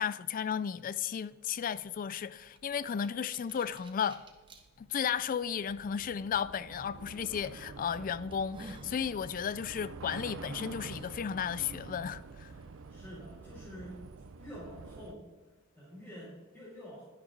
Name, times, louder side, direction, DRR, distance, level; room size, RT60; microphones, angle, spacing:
voice 1, 0.0-4.2 4.8-12.5, left 7 dB, 40° left, 0.3 m, -34 dB
Train / Subway metro underground, 1.8-1.9 2.1-15.1, right 4 dB, 70° right, 0.6 m, -48 dB
sound 1, 2.6-4.6 5.3-5.4 7.1-7.3 7.8-7.9 8.3-9.0, right 1 dB, 25° right, 1.3 m, -51 dB
voice 2, 12.9-14.0 14.4-15.2 15.7-17.0, equal, 10° left, 4.2 m, -47 dB
11.0 x 11.0 x 3.9 m
head